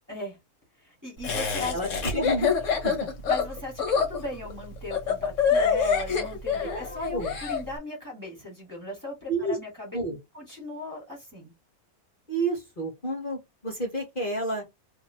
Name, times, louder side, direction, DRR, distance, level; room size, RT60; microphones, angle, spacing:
voice 1, 0.8-1.8 3.3-10.0 10.3-11.5, left 2 dB, 15° right, 1.7 m, -37 dB
Laughter, 1.2-7.6, left 6 dB, 55° left, 1.3 m, -26 dB
voice 2, 1.7-2.5 2.8-3.1 6.6-7.3 9.3-9.6 9.9-10.2 12.3-14.6, right 2 dB, 35° left, 1.3 m, -30 dB
2.8 x 2.7 x 4.3 m
omnidirectional pair, 1.6 m